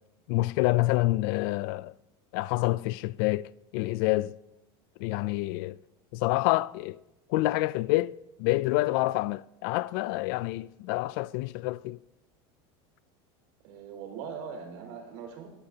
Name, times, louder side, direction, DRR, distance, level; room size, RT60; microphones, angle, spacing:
voice 1, 0.3-1.9 2.3-4.3 5.0-5.8 6.1-7.0 7.3-12.0, left 19 dB, 60° left, 0.4 m, -27 dB
voice 2, 13.6-15.5, right 6 dB, 65° right, 5.1 m, -41 dB
22.0 x 15.0 x 2.8 m
supercardioid pair, 160°, 13 cm